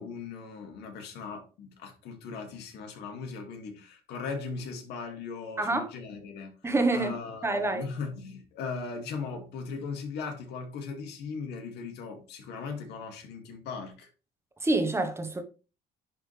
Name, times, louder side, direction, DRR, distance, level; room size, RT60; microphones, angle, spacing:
voice 1, 0.0-14.1, left 4 dB, 80° left, 2.4 m, -38 dB
voice 2, 5.6-5.9 6.6-7.1 7.4-7.8 14.6-15.4, right 2 dB, 15° right, 1.3 m, -26 dB
10.5 x 4.2 x 3.4 m
cardioid pair, 110°, 17 cm